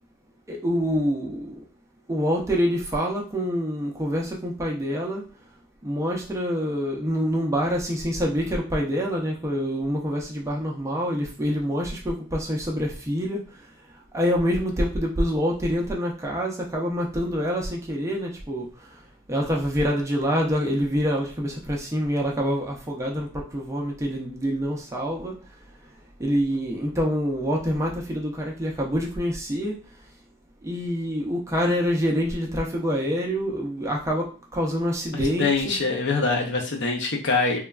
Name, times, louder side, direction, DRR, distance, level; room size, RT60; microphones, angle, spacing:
voice 1, 0.5-1.6 2.1-5.2 5.8-13.7 14.1-19.0 19.3-25.4 26.2-29.8 30.6-35.9, equal, 15° right, -1 dB, 0.4 m, -26 dB
voice 2, 35.1-37.6, left 3 dB, 55° left, 2 dB, 0.5 m, -24 dB
3.1 x 2.2 x 2.3 m, 0.38 s
head